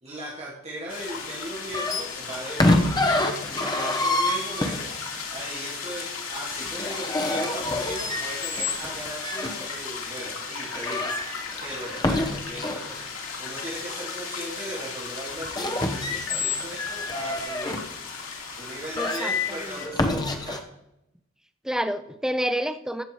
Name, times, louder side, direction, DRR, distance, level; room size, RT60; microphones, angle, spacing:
voice 1, 0.0-4.9 5.3-11.1 11.4-17.8 18.6-20.6, right 1 dB, 30° right, -5 dB, 2.5 m, -38 dB
sound 1, 0.9-19.9, left 5 dB, 90° left, 2.5 m, -36 dB
sound 2, 1.7-5.2 6.7-9.6 10.2-10.3 10.6-12.9 15.4-17.9 18.5-18.6 19.0-20.6, left 2 dB, 20° left, 0.9 m, -27 dB
voice 2, 19.0-19.8 21.6-23.0, equal, 5° right, 9 dB, 0.5 m, -29 dB
15.0 x 6.7 x 4.6 m, 0.83 s
head